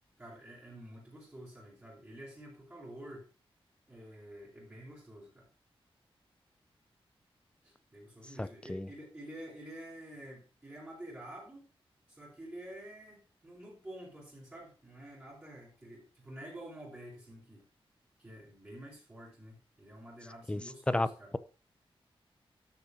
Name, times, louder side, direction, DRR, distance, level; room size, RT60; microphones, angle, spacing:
voice 1, 0.2-3.3 3.9-5.5 7.6-11.6 12.1-17.6 18.2-21.3, right 1 dB, 20° right, -7 dB, 4.5 m, -49 dB
voice 2, 8.4-8.9 20.5-20.6 20.9-21.1, left 1 dB, 10° left, 14 dB, 0.6 m, -31 dB
12.0 x 6.7 x 5.0 m, 0.34 s
wide cardioid pair, 155°, 10 cm